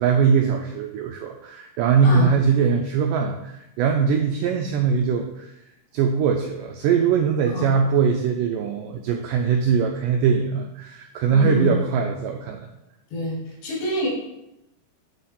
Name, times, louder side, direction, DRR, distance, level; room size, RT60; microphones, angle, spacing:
voice 1, 0.0-5.5 5.9-12.7, right 6 dB, 90° right, 4 dB, 1.9 m, -21 dB
voice 2, 11.3-11.7 13.1-14.1, equal, 80° left, -3 dB, 4.1 m, -26 dB
9.1 x 3.8 x 4.3 m, 0.87 s
omnidirectional pair, 4.4 m